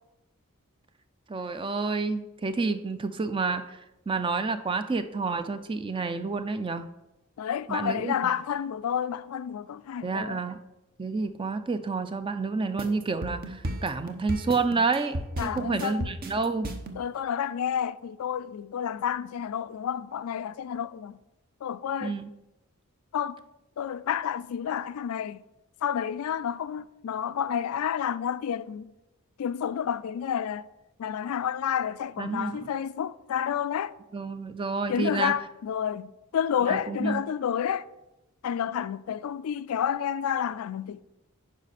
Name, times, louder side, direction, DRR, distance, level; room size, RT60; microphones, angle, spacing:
voice 1, 1.3-3.8 4.1-6.9 7.7-8.3 10.0-10.6 11.0-16.7 22.0-22.3 32.2-32.7 34.1-35.3 36.7-37.2, right 4 dB, 25° right, 0.4 m, -29 dB
voice 2, 7.4-10.4 15.4-16.1 17.0-21.2 21.6-22.2 23.1-23.4 23.8-25.4 25.8-28.9 29.4-30.7 31.0-33.9 34.9-37.9 38.4-41.0, left 8 dB, 85° left, 0.3 m, -30 dB
sound 1, 12.8-17.0, right 1 dB, 45° right, 0.9 m, -34 dB
10.0 x 5.2 x 4.2 m
head